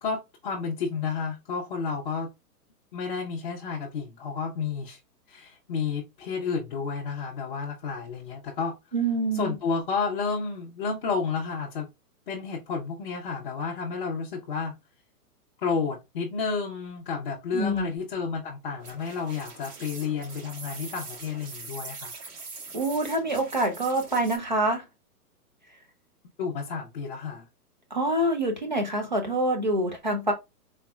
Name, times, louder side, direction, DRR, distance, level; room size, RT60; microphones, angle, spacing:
voice 1, 0.0-2.3 2.9-5.0 5.3-8.8 9.3-11.9 12.3-14.8 15.6-22.1 26.4-27.5, left 5 dB, 35° left, 0.7 m, -31 dB
voice 2, 8.9-9.5 17.5-17.9 22.7-24.8 27.9-30.3, right 1 dB, 35° right, 0.4 m, -26 dB
sound 1, 18.8-24.4, right 4 dB, 70° right, 1.9 m, -43 dB
4.0 x 3.3 x 2.2 m
hypercardioid pair, 170°, 48 cm